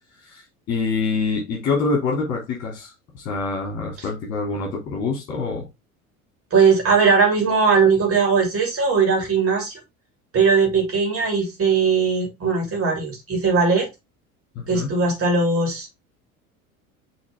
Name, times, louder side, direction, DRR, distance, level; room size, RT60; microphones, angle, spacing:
voice 1, 0.2-5.7 14.5-14.9, left 4 dB, 40° left, 2.9 m, -26 dB
voice 2, 6.5-9.8 10.3-13.9 14.7-15.9, right 5 dB, 30° right, 3.1 m, -19 dB
6.3 x 4.2 x 3.5 m
figure-of-eight pair, 70°, 42 cm